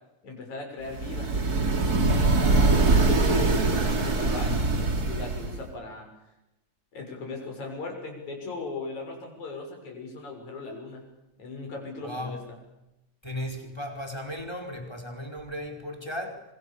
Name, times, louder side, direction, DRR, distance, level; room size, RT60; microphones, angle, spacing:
voice 1, 0.2-1.3 1.9-6.1 6.9-11.1 11.4-12.4, left 3 dB, 75° left, 1 dB, 8.0 m, -38 dB
sound 1, 0.9-5.7, right 3 dB, 30° right, 2.9 m, -23 dB
voice 2, 12.0-12.4 13.2-16.4, left 1 dB, 10° left, 4 dB, 4.9 m, -36 dB
28.0 x 26.0 x 7.0 m, 0.92 s
omnidirectional pair, 3.4 m